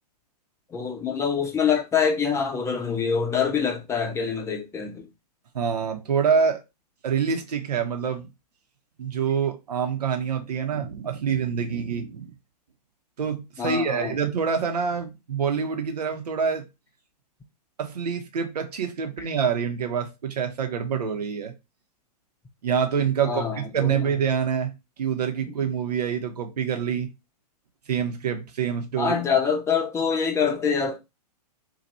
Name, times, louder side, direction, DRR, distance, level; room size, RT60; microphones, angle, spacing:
voice 1, 0.7-5.1 13.6-14.2 23.2-24.1 29.0-31.0, left 6 dB, 15° left, 0.7 m, -25 dB
voice 2, 5.5-6.6 7.0-8.3 9.0-12.3 13.2-16.6 17.8-21.5 22.6-24.7 25.0-27.1 27.9-29.2, right 7 dB, 70° right, 1.0 m, -26 dB
2.7 x 2.5 x 4.2 m
hypercardioid pair, 115°, 21 cm